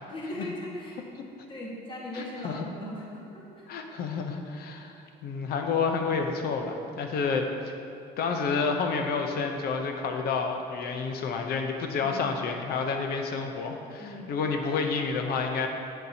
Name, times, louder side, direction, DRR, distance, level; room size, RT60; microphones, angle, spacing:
voice 1, 0.1-1.0 1.5-3.6 12.0-12.3 14.0-14.4, left 1 dB, 30° left, -4 dB, 1.5 m, -39 dB
voice 2, 2.1-2.6 3.7-5.0 5.2-7.7 8.2-15.7, left 5 dB, 65° left, 4 dB, 0.7 m, -29 dB
8.0 x 6.7 x 2.8 m, 2.6 s
cardioid pair, 110°, 17 cm